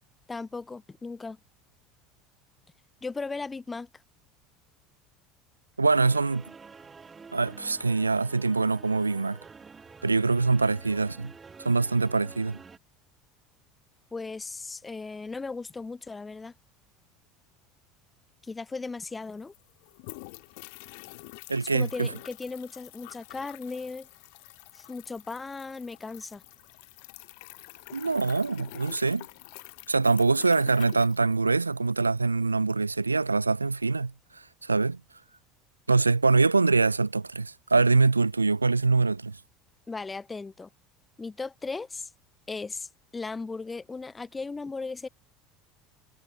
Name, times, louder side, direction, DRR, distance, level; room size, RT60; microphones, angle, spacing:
voice 1, 0.3-1.4 3.0-3.9 14.1-16.5 18.4-19.5 21.7-24.1 24.7-26.4 39.9-40.7 41.2-42.1 42.5-45.1, left 4 dB, 15° left, 0.9 m, -37 dB
voice 2, 5.8-6.4 7.3-9.4 10.0-11.3 11.6-12.6 21.5-22.1 27.9-29.3 29.9-35.0 35.9-39.4, right 3 dB, 85° right, 0.5 m, -24 dB
sound 1, 5.9-12.8, right 5 dB, 20° right, 7.9 m, -48 dB
sound 2, 18.8-18.9 19.1-31.9, left 31 dB, 60° left, 4.6 m, -47 dB
figure-of-eight pair, 70°, 0 cm